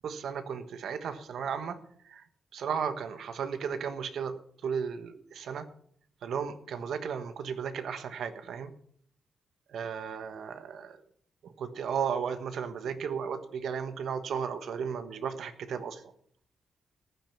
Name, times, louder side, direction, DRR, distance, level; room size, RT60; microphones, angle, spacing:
voice 1, 0.0-1.8 2.0-2.2 2.5-4.3 4.6-5.6 6.2-8.7 9.7-11.0 11.4-16.0, right 7 dB, 80° right, 9 dB, 1.2 m, -34 dB
14.5 x 9.2 x 5.9 m, 0.64 s
cardioid pair, 90°, 0 cm